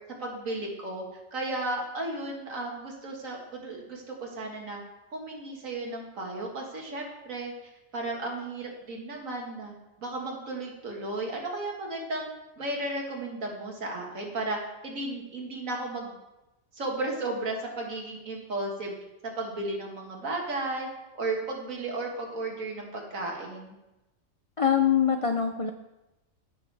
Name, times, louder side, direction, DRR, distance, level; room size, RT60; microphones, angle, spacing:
voice 1, 0.1-1.1 1.3-4.8 5.1-12.3 12.6-14.6 14.8-16.2 16.7-18.9 19.2-20.9 21.1-23.7, right 2 dB, 80° right, 0 dB, 2.2 m, -34 dB
voice 2, 24.6-25.7, left 8 dB, 60° left, 5 dB, 0.3 m, -23 dB
15.0 x 6.1 x 3.4 m, 0.97 s
omnidirectional pair, 1.4 m